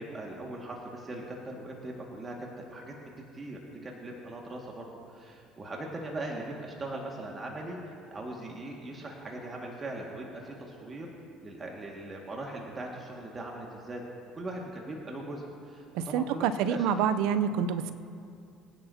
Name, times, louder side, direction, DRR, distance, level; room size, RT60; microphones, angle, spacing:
voice 1, 0.0-7.8 8.1-11.1 11.4-14.0 14.3-16.9 17.2-17.4, right 2 dB, 30° right, -1 dB, 2.0 m, -40 dB
voice 2, 15.9-17.9, right 8 dB, 75° right, 13 dB, 0.6 m, -27 dB
23.5 x 10.0 x 2.9 m, 2.4 s
supercardioid pair, 80°, 0 cm